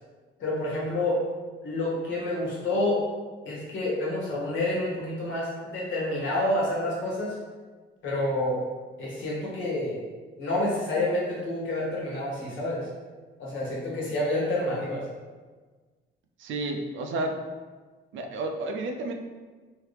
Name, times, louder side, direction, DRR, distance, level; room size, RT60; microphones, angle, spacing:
voice 1, 0.4-1.2 1.6-3.0 3.4-7.3 8.0-8.6 9.0-10.0 10.4-12.9 13.4-15.0, left 1 dB, 75° left, -5 dB, 1.3 m, -28 dB
voice 2, 16.4-17.4 18.1-19.1, right 2 dB, 75° right, 4 dB, 0.5 m, -31 dB
3.1 x 2.7 x 3.3 m, 1.4 s
cardioid pair, 90°, 20 cm